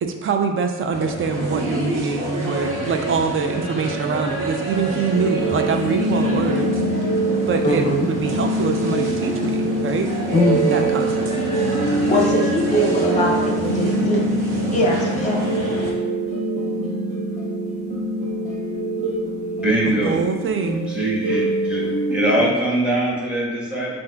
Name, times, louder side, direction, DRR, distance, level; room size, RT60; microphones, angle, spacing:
voice 1, 0.0-6.8 7.5-10.1 10.7-11.3 20.0-20.9, right 5 dB, 45° right, 6 dB, 0.4 m, -24 dB
sound 1, 0.9-15.9, right 2 dB, 75° right, 1.0 m, -28 dB
sound 2, 5.1-22.5, right 1 dB, 25° right, 1.2 m, -24 dB
voice 2, 7.6-8.1 10.3-10.9 12.1-14.2 14.7-15.4, left 1 dB, 25° left, 0 dB, 0.8 m, -21 dB
voice 3, 19.6-20.2 20.9-21.8 22.1-24.0, right 1 dB, 5° right, -6 dB, 1.3 m, -22 dB
7.1 x 2.6 x 2.3 m, 1.2 s
cardioid pair, 130°, 31 cm